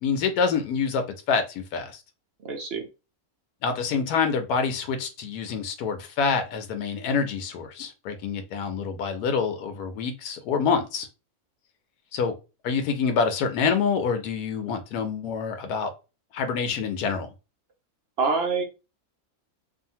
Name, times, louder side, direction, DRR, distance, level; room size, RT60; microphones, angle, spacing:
voice 1, 0.0-2.0 3.6-11.1 12.1-12.3 12.6-15.9 16.3-17.3, left 5 dB, 90° left, 1.1 m, -26 dB
voice 2, 2.4-2.8 18.2-18.6, right 4 dB, 60° right, 0.7 m, -25 dB
2.7 x 2.4 x 2.7 m
omnidirectional pair, 1.6 m